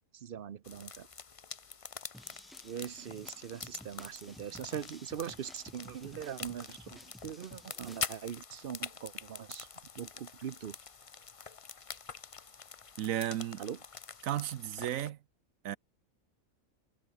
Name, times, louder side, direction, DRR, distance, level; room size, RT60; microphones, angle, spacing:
voice 1, 0.1-1.1 2.6-9.7 10.0-10.8 13.6-13.8, right 9 dB, 50° right, 0.8 m, -42 dB
sound 1, 0.6-15.1, left 5 dB, 35° left, 0.6 m, -46 dB
sound 2, 2.1-8.1, equal, ahead, 7.7 m, -54 dB
voice 2, 13.0-13.6 14.2-15.2 15.6-15.8, right 12 dB, 75° right, 1.1 m, -34 dB
omnidirectional pair, 1.4 m